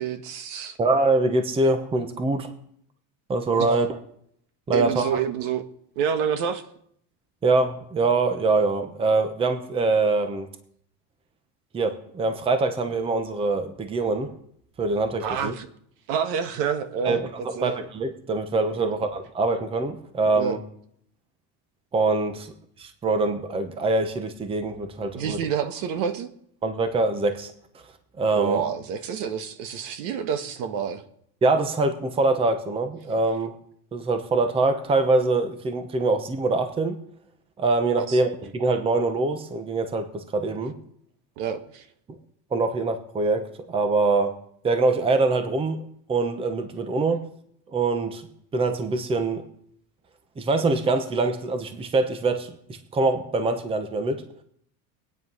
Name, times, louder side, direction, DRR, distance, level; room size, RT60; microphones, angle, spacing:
voice 1, 0.0-0.8 3.6-3.7 4.7-5.6 5.9-6.6 15.2-15.7 16.1-17.7 18.8-18.9 20.3-20.6 25.1-26.3 28.3-31.0 38.0-38.2 41.4-41.9, right 7 dB, 65° right, 10 dB, 1.7 m, -28 dB
voice 2, 0.8-2.5 3.3-3.9 4.7-5.2 7.4-10.5 11.7-14.3 14.8-15.5 17.0-20.6 21.9-22.5 22.8-25.4 26.6-27.5 28.2-28.6 31.4-33.5 33.9-37.0 37.6-40.8 42.5-44.3 44.6-45.8 46.1-47.2 47.7-48.3 48.5-49.4 50.4-54.2, right 3 dB, 10° right, 9 dB, 0.9 m, -24 dB
22.5 x 9.4 x 5.5 m, 0.69 s
cardioid pair, 175°, 46 cm